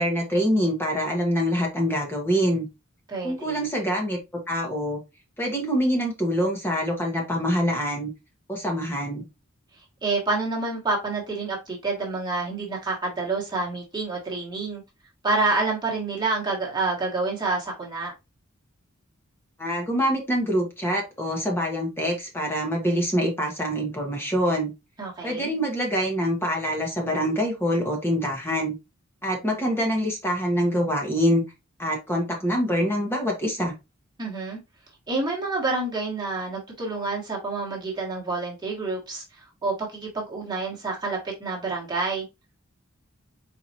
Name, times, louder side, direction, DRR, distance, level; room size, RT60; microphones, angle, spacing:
voice 1, 0.0-2.7 3.2-4.2 4.5-5.0 5.4-8.1 8.5-9.2 19.6-24.7 25.2-28.8 29.2-31.4 31.8-33.7, equal, 10° left, 1.1 m, -25 dB
voice 2, 3.1-3.7 10.0-14.8 15.2-18.1 25.0-25.5 34.2-34.6 35.1-42.2, right 3 dB, 20° right, 1.4 m, -28 dB
4.4 x 3.8 x 2.8 m
head